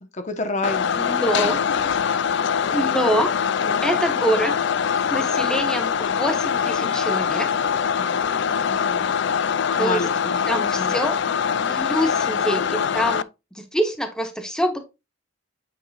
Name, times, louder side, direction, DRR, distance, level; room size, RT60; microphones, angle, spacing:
voice 1, 0.1-2.0 3.6-3.9 8.0-9.1 9.8-11.0, left 2 dB, 35° left, 1.1 m, -31 dB
sound 1, 0.6-13.2, left 7 dB, 60° left, 0.4 m, -23 dB
voice 2, 0.9-1.6 2.6-3.3 3.8-4.6 5.1-7.5 9.8-10.0 10.5-11.2 11.6-13.2 13.6-14.8, equal, 5° left, 1.1 m, -25 dB
8.8 x 4.9 x 2.4 m
head